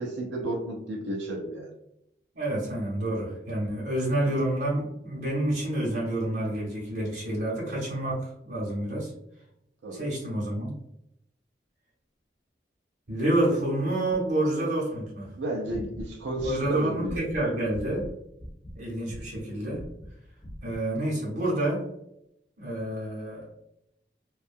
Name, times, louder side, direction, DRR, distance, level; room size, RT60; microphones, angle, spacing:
voice 1, 0.0-1.7 9.8-10.1 15.4-17.2, right 1 dB, 90° right, 0 dB, 0.4 m, -32 dB
voice 2, 2.3-9.1 9.9-10.7 13.1-15.3 16.4-18.1 18.7-19.9 20.6-21.9 22.6-23.5, right 1 dB, 65° right, -6 dB, 0.9 m, -28 dB
sound 1, 15.7-18.1 18.4-18.8 19.0-19.4 19.7-20.1 20.4-20.8, equal, 20° left, 0.3 m, -41 dB
2.7 x 2.2 x 2.5 m, 0.80 s
head